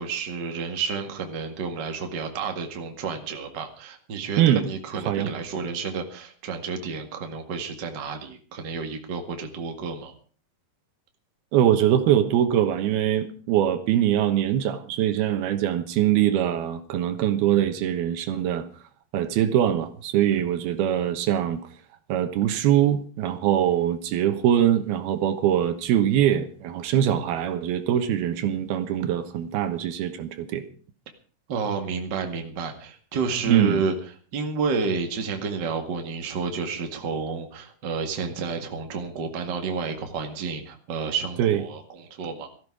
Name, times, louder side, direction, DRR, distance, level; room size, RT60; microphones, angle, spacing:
voice 1, 0.0-10.1 31.5-33.9 34.3-42.5, right 5 dB, 35° right, 2.0 m, -30 dB
voice 2, 11.5-18.6 19.1-21.6 22.1-30.6 33.5-33.8 41.4-41.6, right 11 dB, 80° right, 3.1 m, -22 dB
17.0 x 14.5 x 4.9 m
omnidirectional pair, 4.4 m